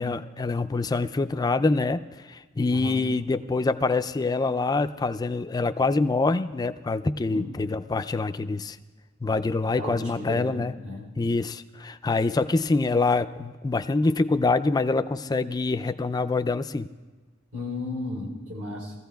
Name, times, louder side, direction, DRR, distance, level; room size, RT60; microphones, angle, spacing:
voice 1, 0.0-8.8 9.2-10.7 11.2-16.9, left 3 dB, 20° left, 10 dB, 0.3 m, -25 dB
voice 2, 9.8-11.1 17.5-18.9, left 2 dB, 80° right, -2 dB, 3.6 m, -34 dB
21.5 x 15.0 x 2.3 m, 1.3 s
head